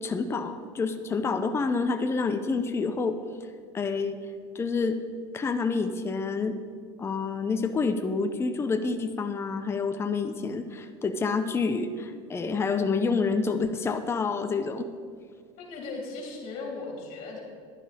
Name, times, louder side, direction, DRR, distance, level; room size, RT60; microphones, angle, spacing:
voice 1, 0.0-3.2 3.7-4.2 4.5-5.0 5.3-6.6 7.0-14.9, left 4 dB, 15° left, 7 dB, 0.6 m, -28 dB
voice 2, 15.6-17.4, left 3 dB, 50° left, -1 dB, 3.1 m, -37 dB
11.0 x 9.8 x 4.2 m, 2.1 s
supercardioid pair, 120°, 15 cm